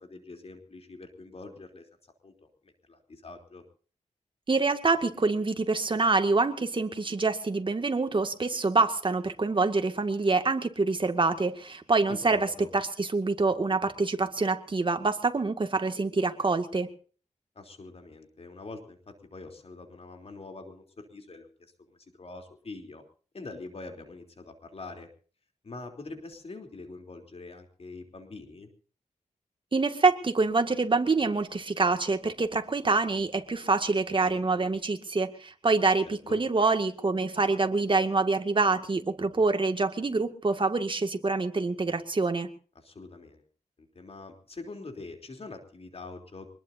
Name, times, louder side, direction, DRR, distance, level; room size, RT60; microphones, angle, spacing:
voice 1, 0.0-1.8 2.2-3.6 12.1-12.7 17.5-21.5 22.2-23.0 23.3-25.1 25.6-28.7 36.3-36.4 42.7-43.4 43.8-46.5, left 3 dB, 50° left, 4 dB, 3.3 m, -44 dB
voice 2, 4.5-16.9 29.7-42.5, right 3 dB, 40° right, 7 dB, 2.1 m, -26 dB
25.0 x 20.5 x 2.7 m, 0.41 s
wide cardioid pair, 110°, 13 cm